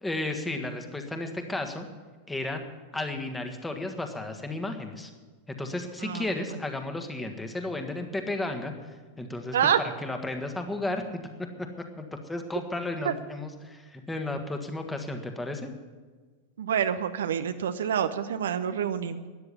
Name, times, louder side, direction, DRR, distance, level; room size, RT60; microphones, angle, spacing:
voice 1, 0.0-1.9 2.3-2.6 2.9-5.1 5.5-11.0 12.0-15.7, left 2 dB, 10° left, 5 dB, 1.6 m, -33 dB
voice 2, 6.0-6.3 9.5-9.8 13.0-13.1 16.6-19.3, right 8 dB, 65° right, 10 dB, 0.7 m, -27 dB
13.0 x 9.7 x 8.4 m, 1.4 s
figure-of-eight pair, 90°, 0 cm